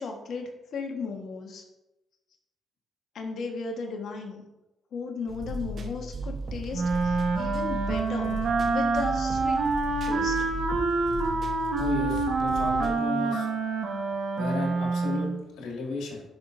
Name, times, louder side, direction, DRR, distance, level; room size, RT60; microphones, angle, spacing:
voice 1, 0.0-1.6 3.1-4.4 4.9-8.4 8.6-9.6 10.1-10.5, left 4 dB, 65° left, 2 dB, 1.4 m, -36 dB
sound 1, 5.3-12.9, right 1 dB, 50° right, 1.1 m, -35 dB
Wind instrument woodwind instrument, 6.7-15.4, right 3 dB, 70° right, 1.4 m, -27 dB
voice 2, 11.7-13.5 14.4-16.2, left 3 dB, 85° left, -1 dB, 2.3 m, -34 dB
11.0 x 5.6 x 2.7 m, 0.98 s
cardioid pair, 90°, 0 cm